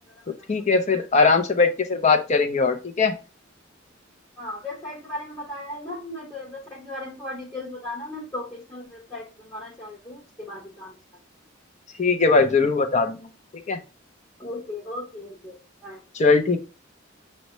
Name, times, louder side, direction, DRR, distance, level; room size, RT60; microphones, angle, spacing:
voice 1, 0.5-3.1 12.0-13.3 13.5-13.8 16.1-16.6, left 4 dB, 35° left, 7 dB, 0.5 m, -20 dB
voice 2, 4.4-10.9 14.4-16.0, left 1 dB, 15° left, -5 dB, 0.9 m, -36 dB
6.2 x 2.1 x 3.0 m, 0.32 s
head